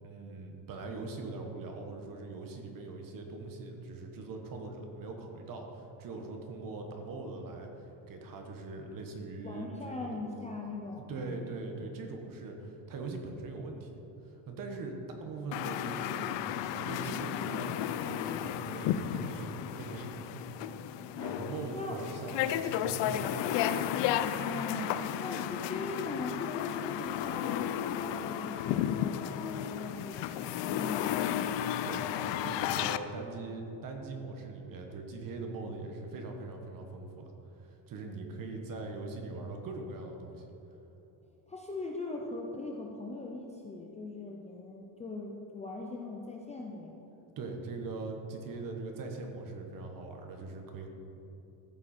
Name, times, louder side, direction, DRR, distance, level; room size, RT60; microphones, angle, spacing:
voice 1, 0.0-7.7 8.1-10.2 11.1-13.9 14.2-16.4 16.7-20.3 21.1-23.4 31.8-32.0 32.4-37.3 37.6-40.5 47.4-50.9, right 3 dB, 45° right, 3 dB, 1.3 m, -41 dB
voice 2, 9.4-11.4 21.7-22.0 24.4-31.5 41.5-47.0, left 3 dB, 15° left, -1 dB, 0.5 m, -40 dB
sound 1, 15.5-33.0, left 10 dB, 70° left, 0.5 m, -33 dB
14.0 x 7.3 x 4.3 m, 2.9 s
cardioid pair, 180°, 46 cm